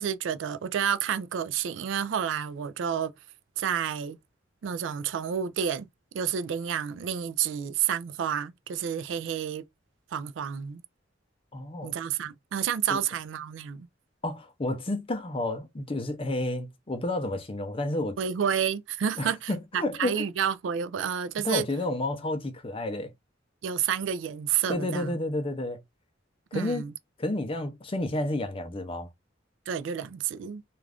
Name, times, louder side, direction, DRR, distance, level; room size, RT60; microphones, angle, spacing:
voice 1, 0.0-3.1 3.6-4.2 4.6-5.9 6.1-9.6 10.1-10.8 11.8-13.9 18.2-21.6 23.6-25.2 26.5-26.9 29.7-30.6, right 8 dB, 80° right, 0.3 m, -30 dB
voice 2, 11.5-11.9 12.9-13.0 14.2-18.2 19.2-20.2 21.4-23.1 24.7-25.8 26.5-26.9 27.2-29.1, left 1 dB, 30° left, 0.5 m, -31 dB
2.4 x 2.4 x 3.3 m
head